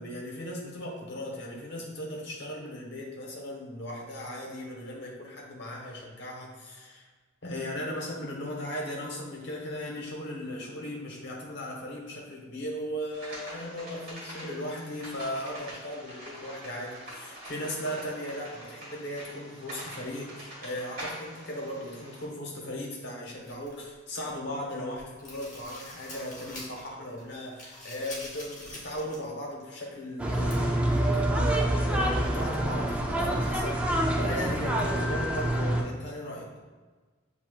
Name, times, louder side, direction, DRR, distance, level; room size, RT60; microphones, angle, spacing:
voice 1, 0.0-7.0 7.4-33.8 34.2-36.5, equal, 55° left, -2 dB, 1.1 m, -37 dB
sound 1, 13.1-22.3, right 1 dB, 45° right, 1.5 m, -44 dB
sound 2, 23.4-24.5 24.8-26.9 27.2-29.3 29.6-29.7 30.5-30.6, left 1 dB, 35° left, 1.0 m, -45 dB
sound 3, 30.2-35.8, right 1 dB, 5° right, 0.4 m, -26 dB
7.3 x 2.8 x 2.3 m, 1.3 s
head